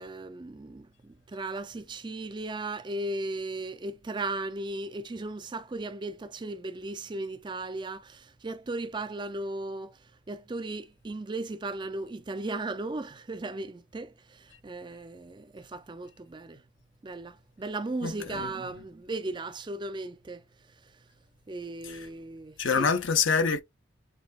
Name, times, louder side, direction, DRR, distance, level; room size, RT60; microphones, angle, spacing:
voice 1, 0.0-10.0 10.3-16.6 17.0-20.4 21.5-22.9, right 2 dB, 25° right, 0.4 m, -36 dB
voice 2, 18.0-18.5 21.9-22.0 22.6-23.6, left 5 dB, 85° left, 0.8 m, -26 dB
7.0 x 2.6 x 2.3 m
head